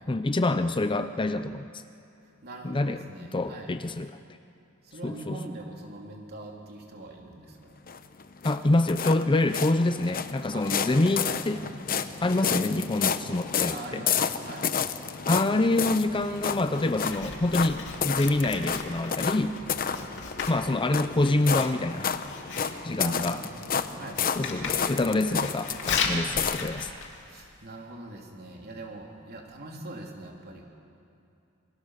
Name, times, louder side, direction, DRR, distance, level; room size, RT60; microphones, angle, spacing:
voice 1, 0.1-1.8 2.6-4.1 5.0-5.4 8.4-11.6 12.2-14.0 15.3-19.6 20.5-22.1 22.8-23.4 24.4-26.9, left 2 dB, 25° left, 10 dB, 0.6 m, -26 dB
voice 2, 2.4-3.7 4.8-7.9 10.5-11.4 13.7-14.7 19.8-20.1 23.0-24.2 26.1-26.7 27.2-30.6, right 2 dB, 45° right, 0 dB, 3.4 m, -43 dB
sound 1, 7.9-26.7, left 7 dB, 40° left, 0.9 m, -31 dB
Writing, 16.0-27.6, left 5 dB, 55° left, 2.6 m, -37 dB
27.5 x 23.0 x 6.6 m, 2.7 s
head